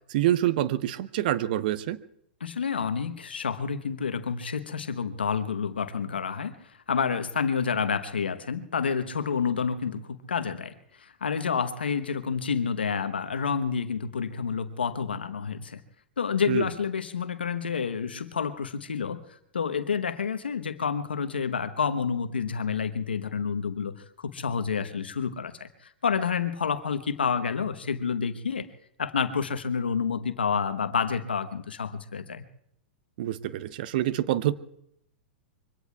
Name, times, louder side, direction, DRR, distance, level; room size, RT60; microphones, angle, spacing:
voice 1, 0.1-2.0 16.5-16.7 33.2-34.5, right 13 dB, 60° right, 15 dB, 0.7 m, -26 dB
voice 2, 2.4-15.8 16.2-19.2 19.5-28.7 29.0-32.4, left 6 dB, 85° left, 10 dB, 1.1 m, -29 dB
25.5 x 23.5 x 2.4 m, 0.74 s
hypercardioid pair, 110°, 5 cm